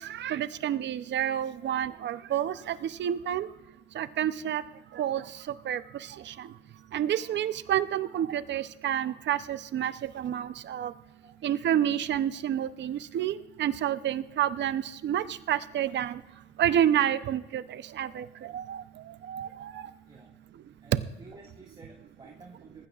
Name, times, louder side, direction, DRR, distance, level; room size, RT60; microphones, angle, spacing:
voice 1, 0.2-2.7 3.0-3.5 4.0-4.6 5.0-5.2 5.7-5.8 6.9-10.9 11.4-16.2 16.6-17.6 18.0-18.2 18.5-18.8 19.3-19.7 20.9-21.0, right 10 dB, 65° right, 14 dB, 0.7 m, -29 dB
voice 2, 19.7-20.3 20.8-20.9 21.2-22.9, right 3 dB, 25° right, -1 dB, 2.0 m, -52 dB
19.0 x 15.0 x 2.4 m, 1.0 s
cardioid pair, 90°, 20 cm